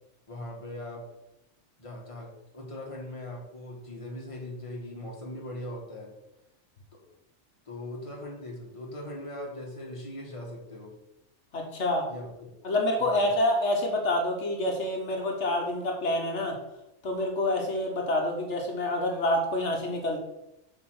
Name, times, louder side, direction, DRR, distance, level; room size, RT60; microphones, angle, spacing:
voice 1, 0.3-1.1 1.8-6.1 6.9-7.0 7.7-11.0 12.1-12.5 13.0-13.3, left 1 dB, 25° left, -1 dB, 1.7 m, -40 dB
voice 2, 11.5-12.1 12.6-16.6 17.0-20.2, left 1 dB, 75° left, 1 dB, 1.5 m, -27 dB
7.0 x 3.9 x 6.3 m, 0.88 s
omnidirectional pair, 1.2 m